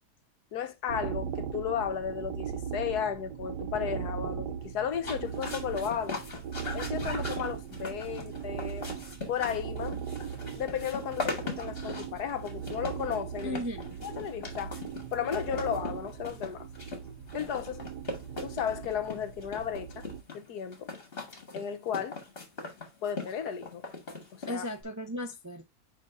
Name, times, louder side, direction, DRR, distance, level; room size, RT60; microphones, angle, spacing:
voice 1, 0.5-6.2 6.7-8.9 9.3-10.0 10.6-13.6 14.0-14.8 15.1-16.7 17.3-17.8 18.4-20.0 20.3-20.9 21.5-22.2 23.0-23.8 24.3-24.6, left 8 dB, 75° left, 1.4 m, -34 dB
sound 1, 0.9-20.2, right 8 dB, 90° right, 1.3 m, -39 dB
sound 2, 4.9-24.8, left 3 dB, 35° left, 2.0 m, -40 dB
voice 2, 13.4-14.1 24.5-25.7, equal, 25° right, 0.4 m, -36 dB
10.0 x 3.8 x 2.5 m
omnidirectional pair, 1.7 m